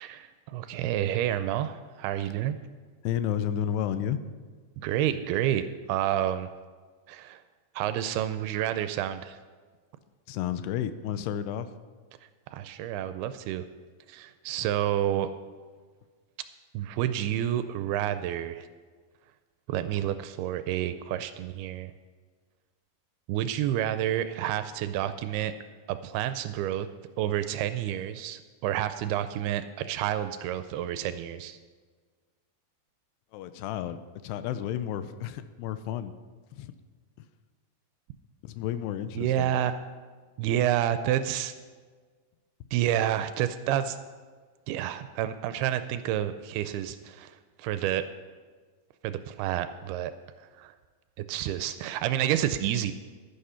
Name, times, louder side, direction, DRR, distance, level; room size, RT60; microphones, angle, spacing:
voice 1, 0.0-2.6 4.8-6.5 7.1-7.4 7.8-9.4 12.5-13.7 14.1-15.3 16.7-18.7 19.7-21.9 23.3-25.5 25.9-26.9 27.2-31.6 39.2-39.7 40.4-41.5 42.7-44.0 44.7-48.0 49.0-50.1 50.6-50.7 51.3-52.9, right 11 dB, 80° right, 11 dB, 2.4 m, -29 dB
voice 2, 3.0-4.2 10.3-11.7 33.3-36.1 36.6-36.7 38.4-39.5, left 10 dB, 85° left, 12 dB, 2.7 m, -32 dB
11.5 x 10.5 x 5.7 m, 1.5 s
omnidirectional pair, 4.7 m